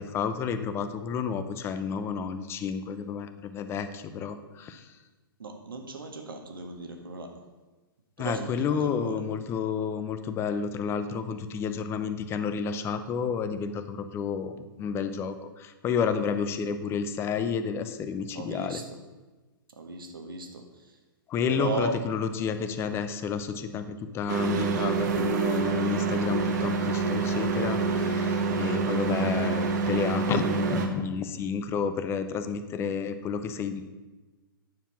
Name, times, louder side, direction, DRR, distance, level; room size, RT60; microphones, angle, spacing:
voice 1, 0.0-4.9 8.2-18.8 21.3-33.9, left 6 dB, 20° left, 10 dB, 0.7 m, -31 dB
voice 2, 5.4-7.3 8.2-9.2 18.3-19.0 19.7-20.9 21.5-22.0, right 3 dB, 70° right, 4 dB, 1.7 m, -36 dB
sound 1, 24.3-30.9, right 4 dB, 50° right, 1.3 m, -27 dB
9.6 x 7.1 x 5.8 m, 1.2 s
figure-of-eight pair, 115°, 12 cm